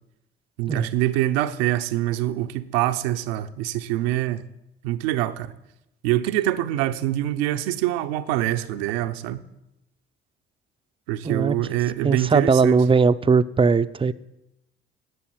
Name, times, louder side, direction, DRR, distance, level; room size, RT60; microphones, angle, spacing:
voice 1, 0.6-4.4 4.8-5.5 6.0-9.4 11.1-12.8, right 14 dB, 80° right, 0.7 m, -25 dB
voice 2, 11.2-11.5 12.0-14.1, right 5 dB, 15° right, 0.5 m, -19 dB
11.0 x 7.0 x 8.8 m
hypercardioid pair, 55°, 30 cm